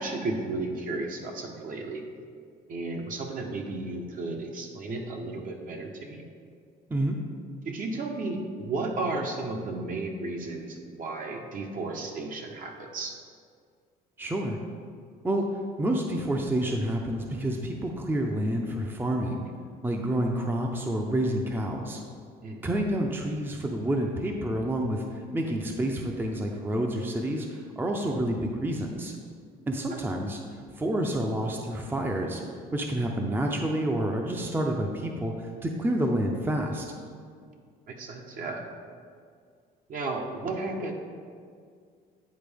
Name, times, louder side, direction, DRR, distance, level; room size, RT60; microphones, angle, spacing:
voice 1, 0.0-2.0 2.7-6.2 7.6-13.1 22.4-22.7 29.9-30.0 37.9-38.7 39.9-40.9, right 2 dB, 55° right, 2 dB, 0.9 m, -33 dB
voice 2, 14.2-14.6 15.2-15.5 15.8-19.5 19.8-22.0 22.6-25.0 25.3-29.1 29.7-30.4 30.8-32.4 32.7-36.8, right 1 dB, 10° right, 2 dB, 0.5 m, -28 dB
9.3 x 4.4 x 3.5 m, 2.1 s
cardioid pair, 110°, 17 cm